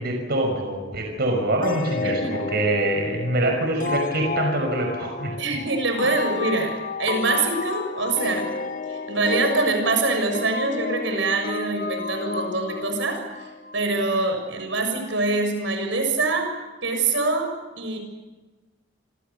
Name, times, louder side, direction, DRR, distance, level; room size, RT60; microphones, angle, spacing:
voice 1, 0.0-5.3, right 1 dB, 55° right, 2 dB, 5.8 m, -25 dB
sound 1, 1.6-14.0, left 4 dB, 45° left, 1.0 m, -31 dB
voice 2, 2.0-2.4 5.4-8.5 8.9-16.5 16.8-18.0, right 3 dB, 75° right, 4 dB, 7.0 m, -24 dB
28.0 x 27.0 x 7.0 m, 1.2 s
head